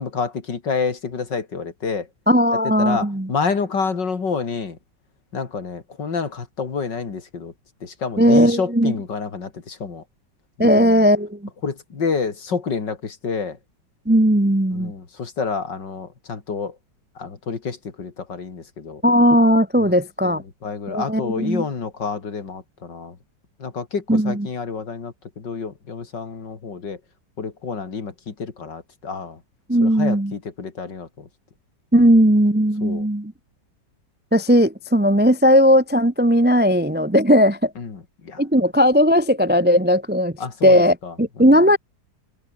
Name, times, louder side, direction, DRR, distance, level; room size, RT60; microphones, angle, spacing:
voice 1, 0.0-2.1 2.8-4.8 5.3-7.5 7.8-10.0 10.6-11.0 11.6-13.6 14.7-16.7 17.2-19.0 19.8-20.0 20.2-23.2 23.6-27.0 27.4-29.4 29.8-31.3 32.8-33.1 37.8-38.4 40.4-41.1, left 5 dB, 80° left, 3.4 m, -28 dB
voice 2, 2.3-3.3 8.2-8.9 10.6-11.4 14.1-14.9 19.0-20.4 20.9-21.6 24.1-24.5 29.7-30.3 31.9-33.3 34.3-37.7 38.4-40.3 40.6-41.8, equal, 15° right, 0.3 m, -17 dB
omnidirectional pair, 1.9 m